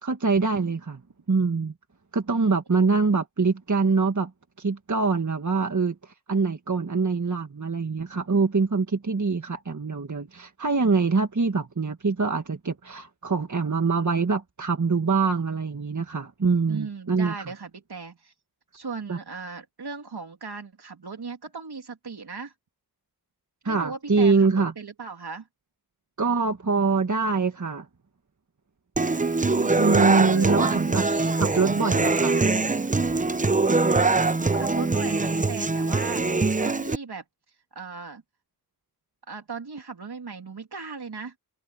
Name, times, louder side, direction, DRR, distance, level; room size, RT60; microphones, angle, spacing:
voice 1, 0.0-1.0 1.3-1.7 2.1-4.3 4.6-17.5 19.1-19.2 23.6-24.7 26.2-27.9 29.8-31.0 31.4-32.4, right 4 dB, 50° right, 1.7 m, -24 dB
voice 2, 16.7-18.3 18.7-22.5 23.6-25.5 29.1-29.7 30.3-31.6 34.4-37.2 37.7-38.2 39.3-41.3, right 4 dB, 80° right, 3.1 m, -38 dB
Human voice / Acoustic guitar, 29.0-36.9, right 3 dB, 20° right, 0.6 m, -23 dB
wide cardioid pair, 80°, 38 cm